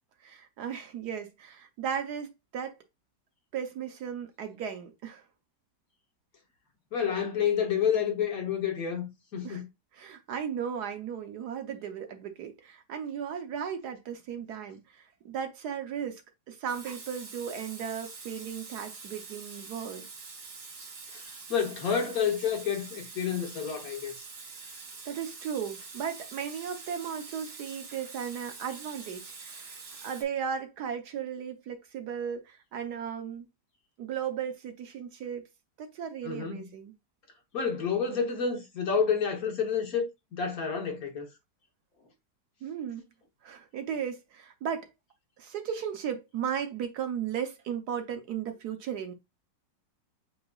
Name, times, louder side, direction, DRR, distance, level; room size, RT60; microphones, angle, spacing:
voice 1, 0.2-2.8 3.5-5.2 9.4-9.6 9.9-16.2 16.5-20.1 25.1-33.4 34.0-35.5 35.8-36.9 42.6-43.0 43.4-44.9 45.4-49.1, right 8 dB, 70° right, 1.4 m, -36 dB
voice 2, 6.9-9.7 21.1-21.2 21.5-24.1 36.2-36.6 37.5-40.1 40.3-41.3, left 7 dB, 60° left, 1.5 m, -29 dB
Water tap faucet / Sink (filling or washing), 16.7-30.2, right 4 dB, 90° right, 2.3 m, -45 dB
7.7 x 3.0 x 2.3 m
omnidirectional pair, 1.9 m